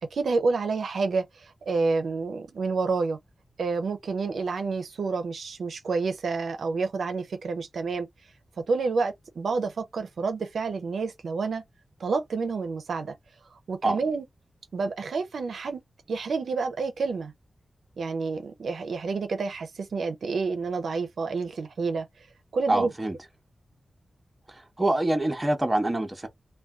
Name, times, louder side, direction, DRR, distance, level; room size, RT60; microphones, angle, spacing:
voice 1, 0.1-3.2 3.6-8.1 8.6-11.6 12.0-13.1 13.7-14.2 14.7-15.8 16.1-17.3 18.0-22.3 22.5-22.9, right 4 dB, 75° right, 0.5 m, -29 dB
voice 2, 22.7-23.2 24.5-26.3, right 2 dB, 15° right, 0.7 m, -25 dB
2.5 x 2.1 x 3.4 m
wide cardioid pair, 140°, 0 cm